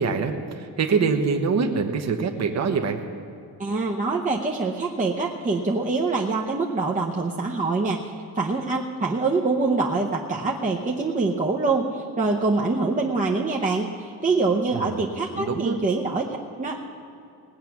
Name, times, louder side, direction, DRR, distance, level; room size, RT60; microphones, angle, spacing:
voice 1, 0.0-3.0 14.7-15.0 15.4-15.8, right 5 dB, 45° right, 4 dB, 1.0 m, -24 dB
voice 2, 3.6-8.0 8.3-16.8, right 3 dB, 20° right, -2 dB, 0.8 m, -25 dB
19.0 x 8.2 x 6.0 m, 2.6 s
cardioid pair, 150°, 39 cm